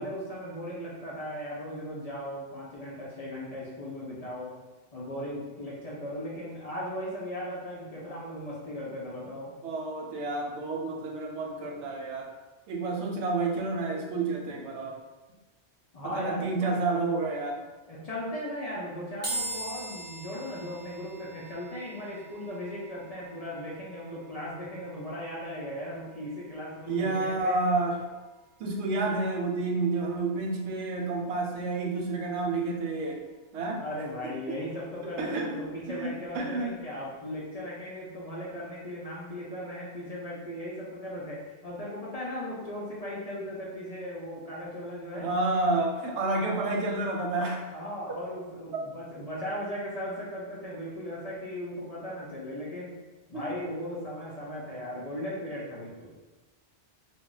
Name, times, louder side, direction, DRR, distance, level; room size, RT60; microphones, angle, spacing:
voice 1, 0.0-4.6 4.9-9.5 15.9-16.7 17.9-27.6 33.8-45.3 47.7-53.0 53.3-56.1, equal, 50° left, -6 dB, 0.5 m, -37 dB
voice 2, 9.6-12.3 12.7-14.9 16.0-17.6 26.9-27.9 28.6-33.2 33.5-33.8 34.5-34.6 35.0-35.7 36.0-36.7 45.1-47.7 48.1-48.2 48.7-48.8 53.3-53.5, right 3 dB, 90° right, 0 dB, 0.9 m, -30 dB
sound 1, 19.2-32.6, right 2 dB, 10° left, 0.9 m, -44 dB
2.2 x 2.0 x 3.8 m, 1.2 s
omnidirectional pair, 1.1 m